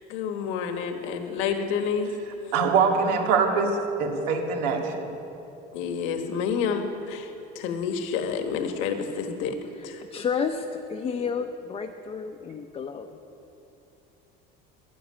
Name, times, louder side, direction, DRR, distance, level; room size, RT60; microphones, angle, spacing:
voice 1, 0.1-2.1 5.7-7.3 7.5-9.5 9.8-10.0, left 6 dB, 70° left, 6 dB, 1.4 m, -29 dB
voice 2, 2.5-5.1, right 5 dB, 90° right, 2 dB, 2.3 m, -23 dB
voice 3, 9.6-13.1, left 6 dB, 25° left, 3 dB, 0.8 m, -31 dB
13.0 x 10.5 x 10.0 m, 2.9 s
cardioid pair, 140°, 21 cm